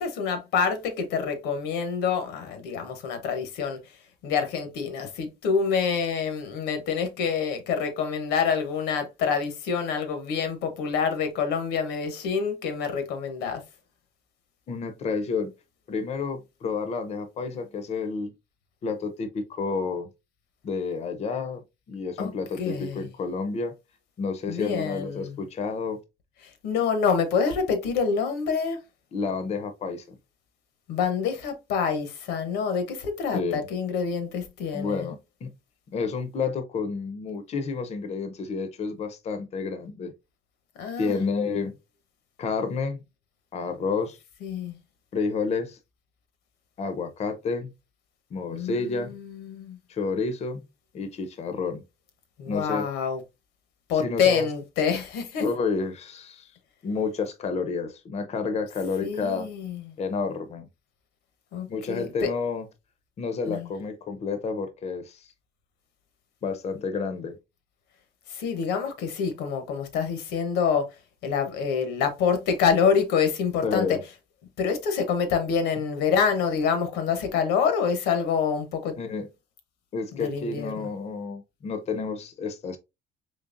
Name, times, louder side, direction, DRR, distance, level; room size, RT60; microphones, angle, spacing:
voice 1, 0.0-3.8 4.2-13.6 22.2-23.1 24.5-25.4 26.4-28.8 30.9-35.1 40.8-41.2 44.4-44.8 48.5-49.8 52.4-53.2 53.9-55.4 59.0-59.9 61.5-62.3 63.5-63.7 68.3-70.9 71.2-74.0 74.6-79.0 80.1-80.9, left 6 dB, 90° left, 0.9 m, -27 dB
voice 2, 14.7-15.5 15.9-18.3 18.8-20.1 20.6-23.7 24.2-26.0 29.1-30.2 33.3-33.7 34.7-35.5 35.9-40.1 41.0-41.7 42.4-43.0 43.5-44.2 45.1-45.8 46.8-47.7 48.3-49.1 49.9-50.6 50.9-51.8 52.5-52.9 53.9-54.5 55.4-56.5 56.8-59.5 60.0-60.7 61.7-62.7 63.2-65.3 66.4-67.4 73.6-74.0 79.0-79.3 79.9-82.8, left 4 dB, 40° left, 0.6 m, -30 dB
3.8 x 3.2 x 2.5 m
cardioid pair, 110°, 17 cm